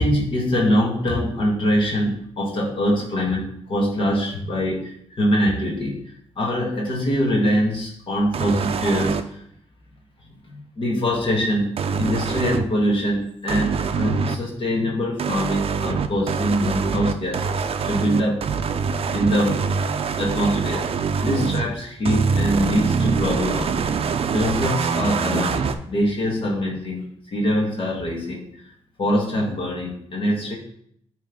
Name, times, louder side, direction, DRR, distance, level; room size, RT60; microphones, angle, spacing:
voice 1, 0.0-9.4 10.5-11.7 12.0-18.5 19.1-19.7 20.2-20.9 21.2-28.4 29.0-30.5, equal, 50° left, -1 dB, 1.5 m, -23 dB
sound 1, 8.3-9.2 11.8-12.7 13.5-14.4 15.2-21.7 22.0-25.7, right 5 dB, 60° right, 0.5 m, -24 dB
8.9 x 3.3 x 3.7 m, 0.67 s
cardioid pair, 85°, 11 cm